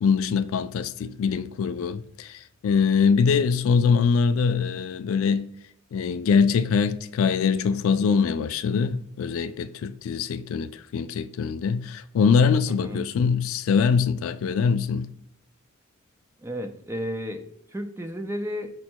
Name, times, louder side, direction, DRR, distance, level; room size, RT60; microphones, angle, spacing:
voice 1, 0.0-5.5 5.9-15.1, left 6 dB, 65° left, 0.3 m, -23 dB
voice 2, 12.7-13.1 16.4-17.4 17.7-18.7, equal, 10° right, 0.4 m, -32 dB
5.3 x 2.2 x 4.3 m
head